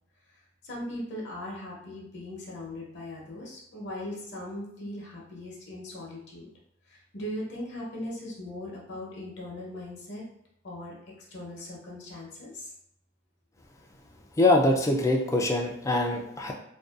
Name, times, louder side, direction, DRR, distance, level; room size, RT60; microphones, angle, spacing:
voice 1, 0.6-6.5 6.9-10.2 10.6-10.9 11.3-12.7, left 1 dB, 65° left, -3 dB, 0.7 m, -39 dB
voice 2, 14.4-16.5, left 2 dB, 15° left, 1 dB, 0.3 m, -23 dB
2.6 x 2.2 x 2.3 m, 0.75 s
head